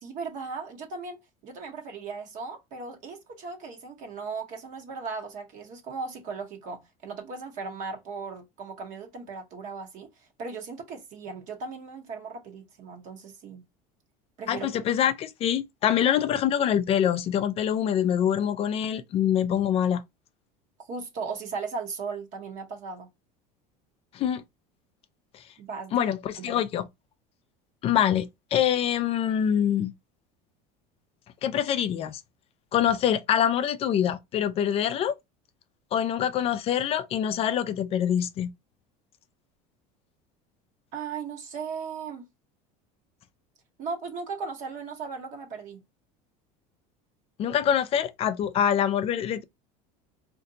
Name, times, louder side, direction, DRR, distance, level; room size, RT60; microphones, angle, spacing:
voice 1, 0.0-13.6 14.4-14.7 20.9-23.1 25.6-26.1 26.4-26.6 40.9-42.3 43.8-45.8, right 4 dB, 50° right, 0.9 m, -37 dB
voice 2, 14.5-20.0 24.1-24.4 25.3-25.4 25.9-26.9 27.8-29.9 31.4-32.2 32.7-35.2 35.9-38.5 47.4-49.4, left 9 dB, 35° left, 0.4 m, -25 dB
3.8 x 2.5 x 2.5 m
cardioid pair, 135°, 17 cm